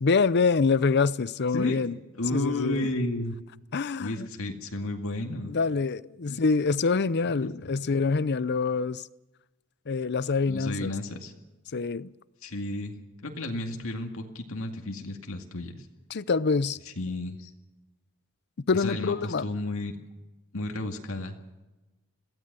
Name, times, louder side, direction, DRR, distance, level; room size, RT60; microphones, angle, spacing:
voice 1, 0.0-1.9 2.3-2.9 3.7-4.3 5.4-9.1 9.9-10.9 11.7-12.1 16.1-16.8 18.7-19.5, left 4 dB, 50° left, 0.6 m, -25 dB
voice 2, 2.1-3.3 4.0-5.5 6.3-6.4 7.2-7.5 10.5-11.3 12.4-13.0 13.2-15.8 17.0-17.5 18.7-19.9 20.5-21.4, left 1 dB, 70° left, 2.2 m, -32 dB
22.5 x 17.0 x 6.9 m
head